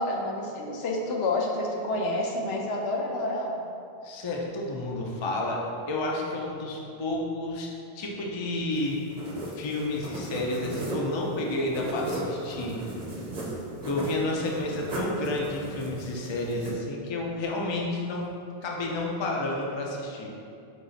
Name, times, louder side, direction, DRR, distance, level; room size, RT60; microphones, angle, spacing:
voice 1, 0.0-3.7, left 2 dB, 75° left, 0 dB, 0.8 m, -29 dB
voice 2, 4.0-7.7 7.9-9.0 9.6-12.8 13.8-18.3 18.6-20.3, left 2 dB, 40° left, -2 dB, 0.4 m, -30 dB
sound 1, 8.7-16.7, right 1 dB, 50° right, 0.9 m, -36 dB
4.7 x 2.4 x 3.9 m, 2.5 s
omnidirectional pair, 1.1 m